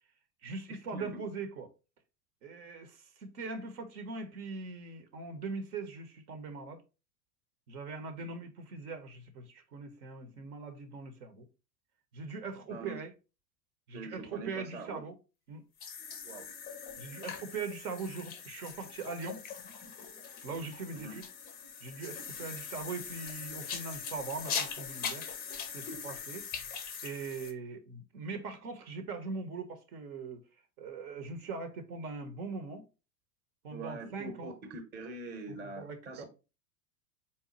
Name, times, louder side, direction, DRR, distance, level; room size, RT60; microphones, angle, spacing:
voice 1, 0.4-1.7 2.4-6.8 7.7-11.5 12.1-13.1 13.9-15.2 15.5-15.6 17.0-19.4 20.4-21.2 21.8-25.3 25.7-26.5 27.0-30.4 30.8-32.8 33.6-34.5 35.5-36.3, right 4 dB, 65° right, 0.9 m, -41 dB
voice 2, 0.9-1.2 12.7-13.0 13.9-15.0 16.2-16.5 20.9-21.1 33.7-36.3, right 2 dB, 20° right, 0.9 m, -43 dB
sound 1, 15.8-27.5, left 6 dB, 20° left, 0.4 m, -41 dB
4.1 x 2.2 x 3.8 m
hypercardioid pair, 90°, 48 cm